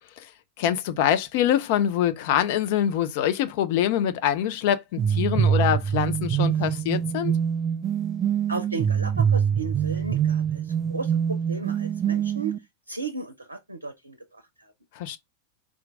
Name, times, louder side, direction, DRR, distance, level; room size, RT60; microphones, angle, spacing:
voice 1, 0.6-7.3 15.0-15.2, left 10 dB, 50° left, 0.5 m, -24 dB
sound 1, 5.0-12.6, right 8 dB, 30° right, 0.4 m, -24 dB
voice 2, 8.5-14.7, right 3 dB, 80° right, 0.5 m, -35 dB
4.4 x 2.5 x 3.7 m
figure-of-eight pair, 90°, 0 cm